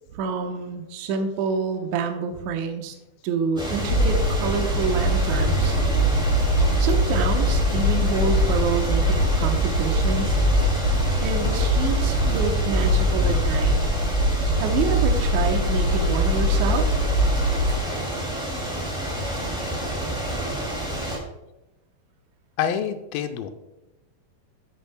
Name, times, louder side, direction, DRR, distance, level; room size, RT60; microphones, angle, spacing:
voice 1, 0.1-2.9 3.2-5.7 6.8-10.4 11.2-13.8 14.6-17.1, right 5 dB, 70° right, 4 dB, 1.9 m, -27 dB
sound 1, 3.6-21.2, right 1 dB, ahead, 1.3 m, -28 dB
sound 2, 3.9-17.8, equal, 55° left, 2.0 m, -22 dB
voice 2, 22.6-23.5, left 8 dB, 80° left, 7 dB, 2.3 m, -26 dB
13.0 x 8.0 x 2.2 m, 0.97 s
omnidirectional pair, 4.4 m